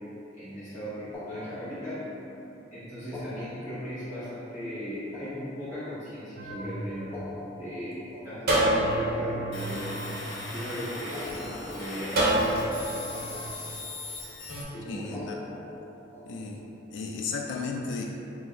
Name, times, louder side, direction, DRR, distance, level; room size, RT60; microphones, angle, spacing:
voice 1, 0.3-2.1 2.7-7.1 7.6-10.2 10.5-13.2 14.7-15.3, equal, 40° left, -15 dB, 1.5 m, -37 dB
sound 1, 1.1-2.4 3.0-6.3 7.0-10.3 11.0-12.9 13.1-14.2 15.0-16.8, left 2 dB, 10° left, 0.5 m, -44 dB
sound 2, 6.4-7.8 8.5-11.0 12.2-13.5, right 1 dB, 55° right, 0.8 m, -29 dB
sound 3, 9.5-14.6, left 2 dB, 85° left, 0.9 m, -39 dB
voice 2, 14.9-15.4 16.3-16.6 16.9-18.1, left 4 dB, 65° left, 0 dB, 0.3 m, -34 dB
4.6 x 2.0 x 3.9 m, 3.0 s
head